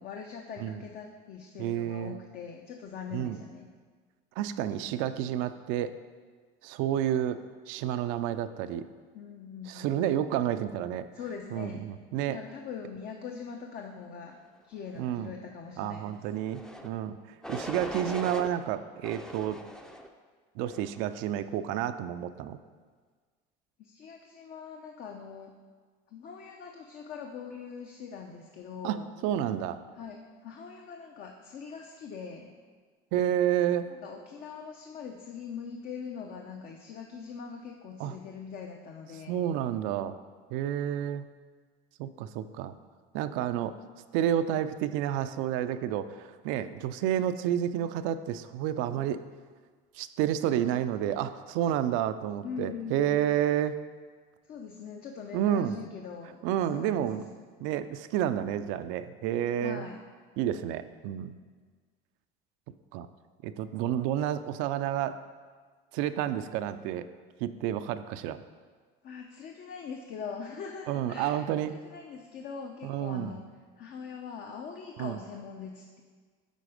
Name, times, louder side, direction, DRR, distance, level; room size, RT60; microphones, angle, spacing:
voice 1, 0.0-3.7 9.1-10.0 11.1-11.8 12.3-14.4 14.6-16.2 23.8-25.5 26.1-29.1 30.0-32.6 33.9-39.4 48.9-49.0 52.4-53.2 54.5-56.4 56.7-57.2 59.6-60.0 69.0-73.4 73.8-76.0, left 6 dB, 50° left, 2 dB, 0.7 m, -42 dB
voice 2, 1.6-2.2 3.1-3.4 4.4-5.9 6.6-7.4 7.7-8.8 9.7-11.1 11.5-12.4 15.0-15.3 15.8-17.2 17.5-19.6 20.6-22.6 28.8-29.8 33.1-33.9 38.0-38.2 39.3-40.2 40.5-41.3 42.0-42.7 43.1-43.7 44.1-49.2 49.9-53.8 55.3-55.8 56.4-57.2 57.6-59.8 60.4-61.4 62.9-63.1 63.4-65.2 65.9-67.1 67.4-68.4 70.9-71.8 72.8-73.4 75.0-75.2, right 11 dB, 70° right, 11 dB, 0.4 m, -30 dB
sound 1, 16.5-16.9 17.4-18.5 19.0-20.1 20.6-21.1, equal, 5° left, 0.5 m, -40 dB
9.1 x 4.1 x 5.0 m, 1.5 s
supercardioid pair, 120°, 21 cm